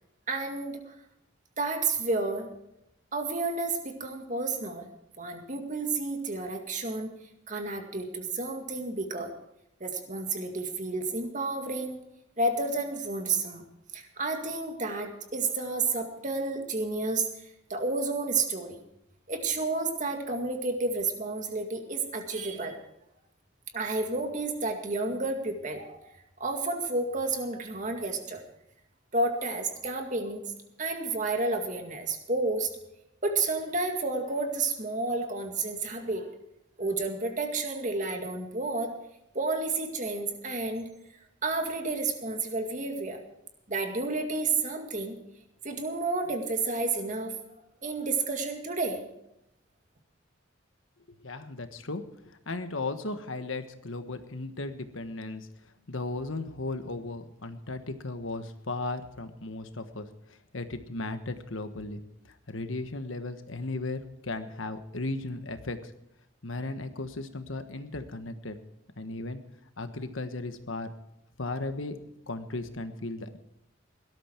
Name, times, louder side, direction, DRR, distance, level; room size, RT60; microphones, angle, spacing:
voice 1, 0.3-1.0 1.6-2.5 3.1-4.9 5.2-7.1 7.5-9.3 9.8-12.0 12.4-13.6 13.9-18.8 19.3-22.8 23.7-26.0 26.4-28.4 29.1-30.4 30.8-32.7 33.2-36.3 36.8-39.0 39.3-40.9 41.4-43.2 43.7-45.2 45.6-47.3 47.8-49.0, right 3 dB, 40° right, 4 dB, 2.1 m, -31 dB
voice 2, 51.1-52.0 52.4-55.5 55.9-60.1 60.5-62.0 62.5-65.9 66.4-68.6 69.0-69.4 69.8-70.9 71.4-72.0 72.3-73.4, left 2 dB, 85° left, 9 dB, 1.4 m, -36 dB
17.5 x 12.5 x 4.6 m, 0.82 s
head